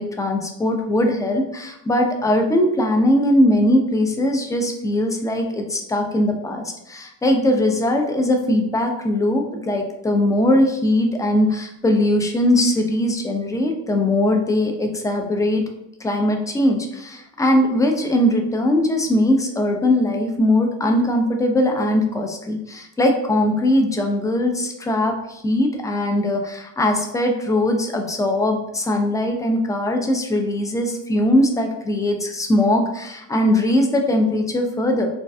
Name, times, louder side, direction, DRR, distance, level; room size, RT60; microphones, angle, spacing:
voice 1, 0.0-15.6 16.0-35.1, left 1 dB, 10° left, 3 dB, 0.3 m, -20 dB
2.6 x 2.2 x 2.3 m, 0.82 s
hypercardioid pair, 45°, 45 cm